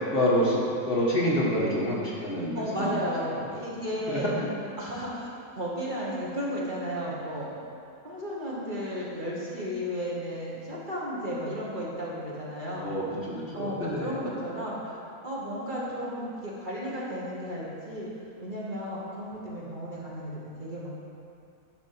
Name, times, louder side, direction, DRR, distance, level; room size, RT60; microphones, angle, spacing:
voice 1, 0.1-3.0 3.3-3.4 4.1-4.5 12.7-14.2, equal, 40° left, -6 dB, 1.5 m, -27 dB
voice 2, 2.5-4.3 4.8-5.3 5.6-7.5 8.0-12.9 13.5-15.0 15.2-18.1 18.4-20.9, equal, 35° right, -6 dB, 1.4 m, -34 dB
10.5 x 4.1 x 5.9 m, 2.5 s
omnidirectional pair, 1.6 m